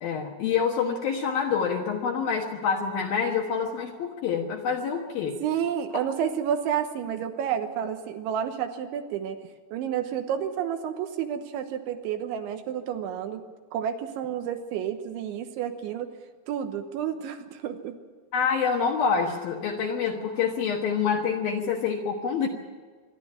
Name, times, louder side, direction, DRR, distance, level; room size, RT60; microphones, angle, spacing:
voice 1, 0.0-5.4 18.3-22.5, left 6 dB, 65° left, 2 dB, 2.5 m, -27 dB
voice 2, 5.4-9.4 9.7-13.4 13.7-16.1 16.5-18.0, right 9 dB, 75° right, 7 dB, 3.3 m, -30 dB
25.5 x 12.0 x 9.9 m, 1.5 s
omnidirectional pair, 5.6 m